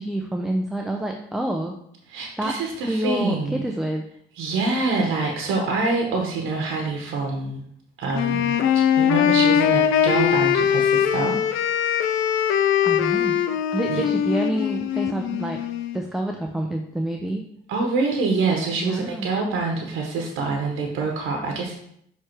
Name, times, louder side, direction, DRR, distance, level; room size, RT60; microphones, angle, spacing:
voice 1, 0.0-1.7 2.4-2.6 2.9-4.0 12.8-13.4 13.7-15.6 15.9-17.4 18.8-19.3, right 1 dB, ahead, 2 dB, 0.6 m, -27 dB
voice 2, 2.1-3.7 4.4-7.6 8.0-11.6 13.9-14.0 17.7-21.8, right 3 dB, 90° right, 1 dB, 1.0 m, -25 dB
Wind instrument woodwind instrument, 8.1-16.0, left 9 dB, 85° left, 0.5 m, -21 dB
6.5 x 3.3 x 4.4 m, 0.70 s
cardioid pair, 90°, 20 cm